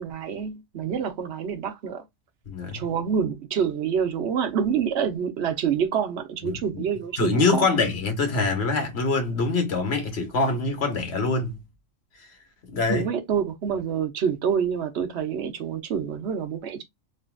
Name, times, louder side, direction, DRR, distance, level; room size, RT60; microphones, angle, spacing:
voice 1, 0.0-2.0 2.7-7.7 12.9-16.8, right 7 dB, 60° right, 1.1 m, -27 dB
voice 2, 2.5-2.8 6.4-6.8 7.2-11.6 12.2-12.3 12.7-13.1, left 3 dB, 55° left, 1.4 m, -24 dB
3.8 x 3.0 x 2.3 m
omnidirectional pair, 1.3 m